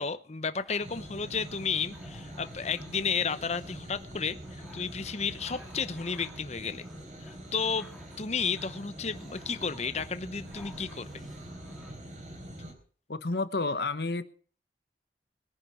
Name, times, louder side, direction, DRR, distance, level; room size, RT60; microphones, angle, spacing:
voice 1, 0.0-6.8 7.2-7.9 8.2-11.1, left 5 dB, 35° left, 0.7 m, -32 dB
sound 1, 0.6-11.9, left 1 dB, ahead, 2.0 m, -55 dB
sound 2, 0.8-12.7, right 1 dB, 40° right, 4.4 m, -45 dB
voice 2, 13.1-14.2, left 3 dB, 60° left, 1.1 m, -30 dB
21.5 x 10.0 x 4.9 m
head